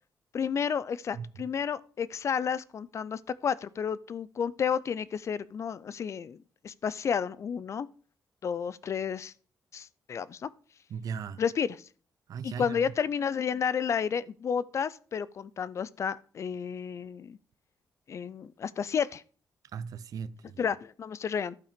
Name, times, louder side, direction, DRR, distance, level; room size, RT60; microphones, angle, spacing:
voice 1, 0.3-6.4 6.6-7.9 8.4-9.3 9.7-10.5 11.4-11.8 12.4-17.4 18.1-19.2 20.6-21.6, left 7 dB, 50° left, 0.4 m, -31 dB
voice 2, 10.9-11.4 12.3-12.8 19.7-20.6, right 6 dB, 65° right, 0.5 m, -37 dB
11.5 x 5.7 x 5.1 m
cardioid pair, 120°, 7 cm